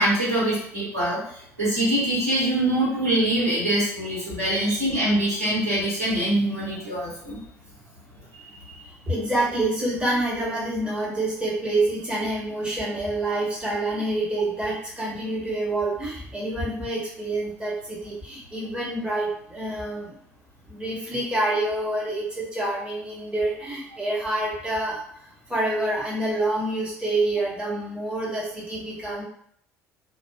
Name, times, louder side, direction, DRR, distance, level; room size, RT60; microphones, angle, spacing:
voice 1, 0.0-7.4, right 1 dB, 85° right, -10 dB, 1.4 m, -24 dB
voice 2, 9.1-20.1 20.7-25.0 25.5-29.2, right 2 dB, 10° right, -6 dB, 1.2 m, -27 dB
2.5 x 2.3 x 2.3 m, 0.66 s
figure-of-eight pair, 55°, 8 cm